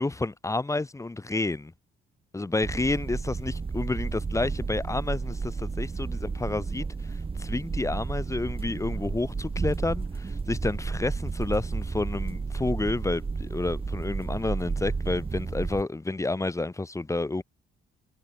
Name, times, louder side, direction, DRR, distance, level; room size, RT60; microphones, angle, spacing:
voice 1, 0.0-1.7 2.3-7.1 7.4-17.4, left 2 dB, 15° left, 1.2 m, -30 dB
sound 1, 2.6-15.8, right 4 dB, 25° right, 1.8 m, -32 dB
cardioid pair, 90°, 20 cm